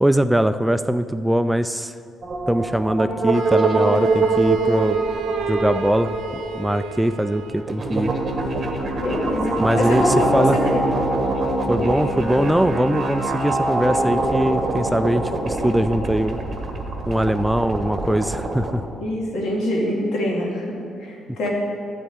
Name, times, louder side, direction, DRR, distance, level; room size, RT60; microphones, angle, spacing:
voice 1, 0.0-1.9 2.5-5.0 5.5-6.1 6.5-8.1 9.6-10.6 11.7-16.4 17.1-18.8, right 1 dB, 5° right, 11 dB, 0.3 m, -21 dB
sound 1, 2.2-18.8, right 3 dB, 35° right, 1.3 m, -24 dB
Wind instrument woodwind instrument, 3.3-7.7, right 4 dB, 75° right, 0.7 m, -31 dB
voice 2, 9.0-10.8 19.0-21.5, left 1 dB, 80° left, -3 dB, 2.3 m, -24 dB
12.0 x 4.2 x 8.1 m, 2.4 s
cardioid pair, 90°, 0 cm